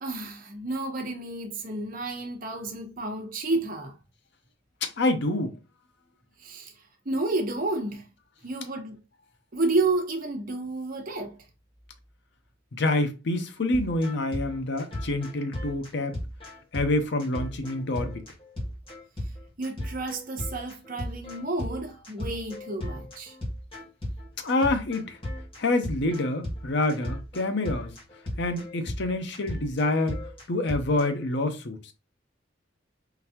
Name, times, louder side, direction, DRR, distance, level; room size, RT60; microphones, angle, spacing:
voice 1, 0.0-3.9 6.4-6.7 7.0-8.0 8.4-9.0 9.5-11.4 19.6-23.3, right 2 dB, 45° right, 1.1 m, -30 dB
voice 2, 4.8-5.6 12.7-16.1 16.7-18.2 24.4-25.2 25.6-27.9 28.4-30.2 30.5-31.9, left 2 dB, 60° left, 0.7 m, -27 dB
sound 1, 13.7-31.1, left 1 dB, 30° left, 1.7 m, -36 dB
3.9 x 3.3 x 2.8 m
head